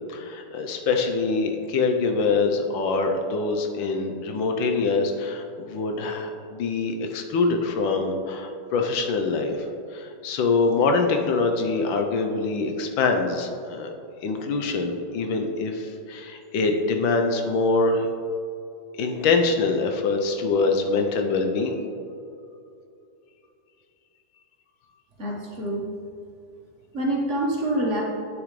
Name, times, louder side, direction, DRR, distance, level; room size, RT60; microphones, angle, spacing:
voice 1, 0.1-9.6 9.9-13.9 14.2-18.1 19.0-21.7, left 4 dB, 80° left, 4 dB, 1.5 m, -24 dB
voice 2, 25.2-25.9 26.9-28.0, right 1 dB, 40° right, -3 dB, 1.5 m, -26 dB
9.2 x 7.7 x 3.2 m, 2.6 s
omnidirectional pair, 2.1 m